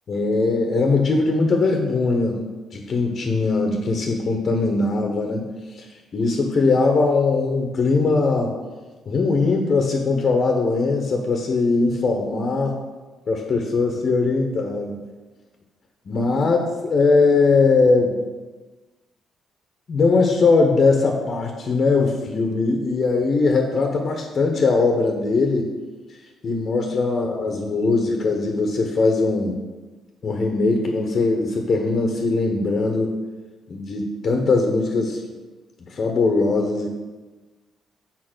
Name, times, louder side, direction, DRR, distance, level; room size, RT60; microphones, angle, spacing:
voice 1, 0.1-2.4 2.7-8.5 9.0-12.8 13.3-15.0 16.1-18.2 19.9-25.7 26.4-29.6 30.2-33.1 33.7-35.2 35.9-36.9, left 3 dB, 55° left, 2 dB, 1.0 m, -20 dB
6.6 x 4.1 x 6.1 m, 1.3 s
supercardioid pair, 60°, 0 cm